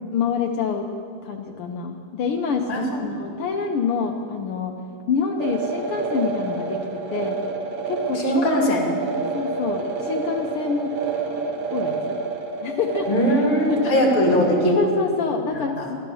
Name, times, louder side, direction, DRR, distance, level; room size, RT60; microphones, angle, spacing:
voice 1, 0.1-0.9 1.2-4.8 5.1-7.4 7.9-8.5 9.3-10.9 11.7-12.2 12.6-13.1 13.4-14.0 14.8-16.0, left 5 dB, 85° left, 2 dB, 1.2 m, -26 dB
voice 2, 2.7-3.0 8.1-8.9 13.1-14.8 15.5-15.9, equal, 15° left, -2 dB, 2.5 m, -20 dB
sound 1, 5.4-14.7, right 4 dB, 55° right, 2.0 m, -28 dB
14.5 x 12.5 x 7.0 m, 2.4 s
omnidirectional pair, 3.6 m